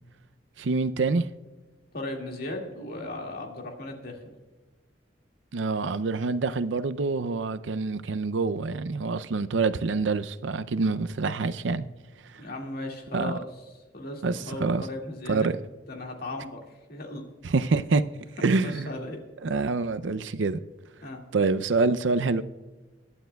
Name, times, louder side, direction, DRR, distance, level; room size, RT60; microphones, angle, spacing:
voice 1, 0.6-1.3 5.5-11.9 12.3-12.4 13.1-13.4 14.2-14.9 15.3-15.6 17.4-18.0 18.4-18.9 19.4-20.6 21.3-22.4, right 4 dB, 80° right, 0.5 m, -26 dB
voice 2, 1.9-4.2 12.4-13.5 13.9-15.5 15.9-16.6 16.9-17.2 18.6-19.2 21.0-21.2, left 2 dB, 55° left, 2.1 m, -36 dB
22.5 x 11.5 x 2.3 m
head